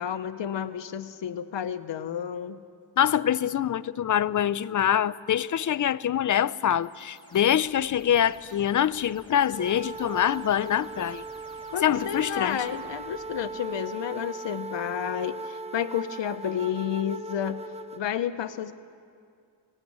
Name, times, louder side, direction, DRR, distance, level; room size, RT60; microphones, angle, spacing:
voice 1, 0.0-2.6 11.7-17.6 17.9-18.7, left 9 dB, 80° left, 1.0 m, -31 dB
voice 2, 3.0-11.2 11.8-12.6, left 10 dB, 45° left, 0.5 m, -25 dB
sound 1, 6.8-13.6, left 1 dB, 10° left, 2.8 m, -53 dB
sound 2, 9.5-18.0, right 3 dB, 15° right, 0.8 m, -38 dB
19.5 x 18.0 x 8.7 m
wide cardioid pair, 105°, 43 cm